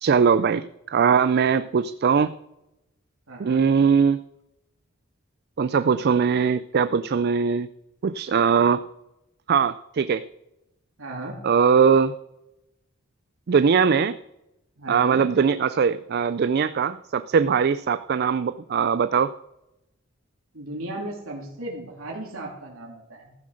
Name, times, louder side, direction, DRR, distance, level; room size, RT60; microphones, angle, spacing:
voice 1, 0.0-2.3 3.4-4.2 5.6-7.7 8.0-8.8 9.5-10.2 11.4-12.1 13.5-14.2 14.9-19.3, right 6 dB, 50° right, 13 dB, 0.4 m, -21 dB
voice 2, 3.3-3.6 11.0-11.3 14.8-15.2 20.5-23.3, right 1 dB, 85° right, -2 dB, 3.0 m, -35 dB
14.5 x 7.6 x 6.4 m, 0.89 s
head